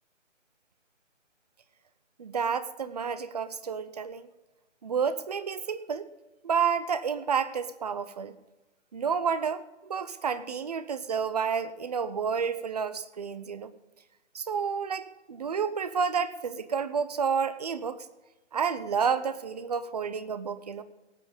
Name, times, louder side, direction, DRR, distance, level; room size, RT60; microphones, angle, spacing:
voice 1, 2.2-4.3 4.8-6.1 6.4-8.3 8.9-13.7 14.3-18.1 18.5-20.8, right 6 dB, 35° right, 14 dB, 0.6 m, -30 dB
18.0 x 8.1 x 5.3 m, 1.1 s
hypercardioid pair, 160°, 36 cm